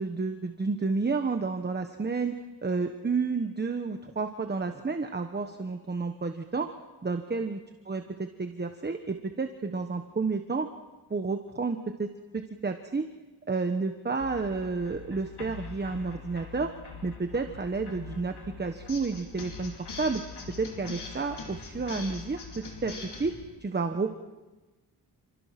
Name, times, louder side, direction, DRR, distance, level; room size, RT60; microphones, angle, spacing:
voice 1, 0.0-2.4 2.6-6.7 7.0-7.6 7.8-10.7 11.1-13.1 13.5-16.7 17.0-20.2 20.6-22.9 23.2-23.3 23.6-24.1, right 4 dB, 25° right, 6 dB, 1.2 m, -31 dB
sound 1, 14.2-23.3, left 4 dB, 70° left, 5.0 m, -43 dB
29.0 x 26.5 x 6.0 m, 1.2 s
wide cardioid pair, 115°, 41 cm